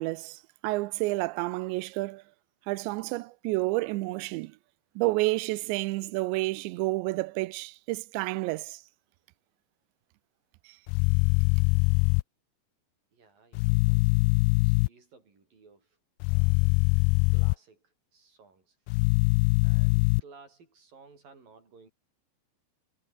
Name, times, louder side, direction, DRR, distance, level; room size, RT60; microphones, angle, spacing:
voice 1, 0.0-2.2 2.7-4.6 5.0-8.8, right 21 dB, 90° right, 3.0 m, -30 dB
sound 1, 10.9-12.2 13.6-14.9 16.2-17.6 18.9-20.2, left 24 dB, 85° left, 2.3 m, -23 dB
voice 2, 13.1-16.0 16.3-17.1 17.3-18.8 19.6-21.9, right 4 dB, 50° right, 8.5 m, -57 dB
omnidirectional pair, 5.0 m